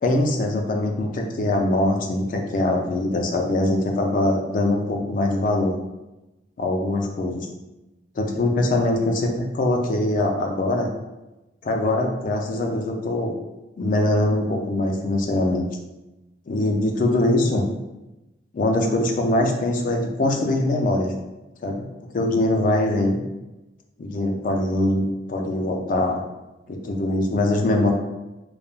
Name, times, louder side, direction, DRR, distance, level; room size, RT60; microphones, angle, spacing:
voice 1, 0.0-5.7 6.6-7.5 8.2-10.9 11.6-13.3 13.8-15.7 16.5-17.6 18.5-21.1 21.6-21.9 22.1-23.2 24.0-26.2 26.7-27.9, left 1 dB, 50° left, 2 dB, 0.4 m, -22 dB
3.1 x 2.1 x 2.2 m, 1.0 s
head